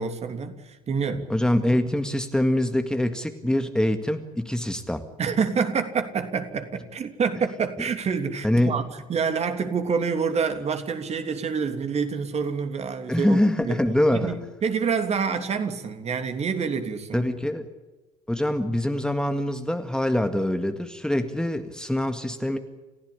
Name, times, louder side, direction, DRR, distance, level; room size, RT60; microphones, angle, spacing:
voice 1, 0.0-1.3 5.2-13.8 14.1-17.3, right 5 dB, 35° right, 3.2 m, -27 dB
voice 2, 1.3-5.0 8.4-8.8 13.1-14.4 17.1-17.7 18.3-22.6, left 1 dB, 5° left, 2.0 m, -24 dB
30.0 x 16.0 x 8.6 m
figure-of-eight pair, 60°, 18 cm